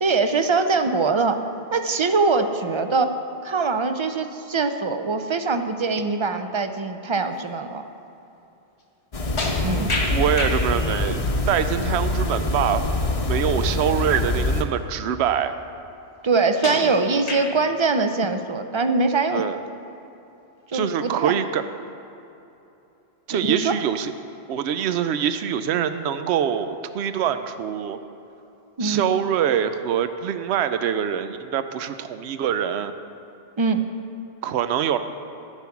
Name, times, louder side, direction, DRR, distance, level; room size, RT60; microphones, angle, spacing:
voice 1, 0.0-1.4 1.7-3.1 3.4-7.8 9.6-9.9 16.2-19.4 20.7-21.3 23.3-23.7 28.8-29.1 33.6-33.8, right 4 dB, 35° right, 8 dB, 0.5 m, -22 dB
sound 1, 9.1-14.6, left 2 dB, 35° left, 0.8 m, -25 dB
sound 2, 9.4-10.6 13.5-13.6 14.3-14.4 16.6-17.7, left 2 dB, 90° left, 1.9 m, -28 dB
voice 2, 10.1-11.2 11.5-12.8 13.3-15.6 19.3-19.6 20.7-21.6 23.3-24.1 24.5-28.0 28.8-32.9 34.4-35.0, right 9 dB, 80° right, 10 dB, 0.8 m, -24 dB
11.0 x 9.8 x 5.9 m, 2.9 s
omnidirectional pair, 1.1 m